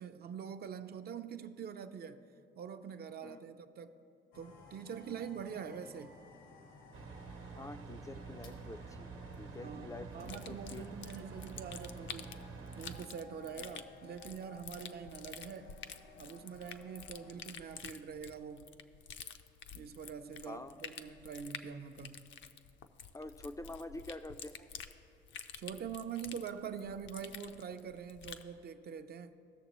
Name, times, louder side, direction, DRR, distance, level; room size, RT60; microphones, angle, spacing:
voice 1, 0.0-2.2 2.6-4.0 4.3-6.1 9.5-12.4 12.8-15.8 16.2-18.7 19.7-22.3 25.6-29.3, right 7 dB, 50° right, 0.5 m, -44 dB
sound 1, 4.3-17.4, left 3 dB, 85° left, 1.2 m, -58 dB
sound 2, 6.9-13.0, right 5 dB, 90° right, 0.9 m, -48 dB
voice 2, 7.5-10.8 13.6-13.7 20.5-20.8 23.1-24.7, left 2 dB, 15° left, 0.3 m, -47 dB
sound 3, 10.2-28.5, left 7 dB, 70° left, 0.5 m, -49 dB
17.0 x 6.5 x 3.0 m
cardioid pair, 90°, 20 cm